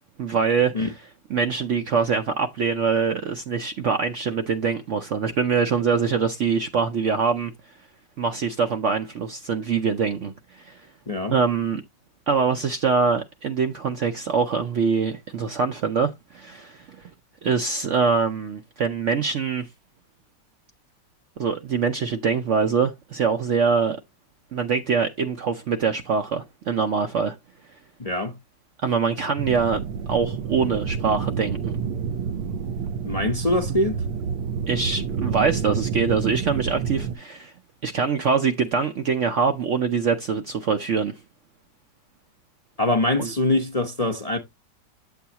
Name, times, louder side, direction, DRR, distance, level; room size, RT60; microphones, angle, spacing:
voice 1, 0.2-0.9 1.3-7.5 8.2-10.8 11.3-11.8 12.3-17.1 17.4-19.7 21.4-24.0 24.5-27.4 28.8-31.8 33.7-33.8 34.7-37.5 37.8-41.1 43.2-43.3, right 5 dB, 60° right, 0.8 m, -24 dB
voice 2, 28.0-28.3 33.0-34.0 42.8-44.4, left 1 dB, 30° left, 0.8 m, -23 dB
sound 1, 29.4-37.2, right 6 dB, 85° right, 1.4 m, -29 dB
9.1 x 7.0 x 2.9 m
omnidirectional pair, 1.8 m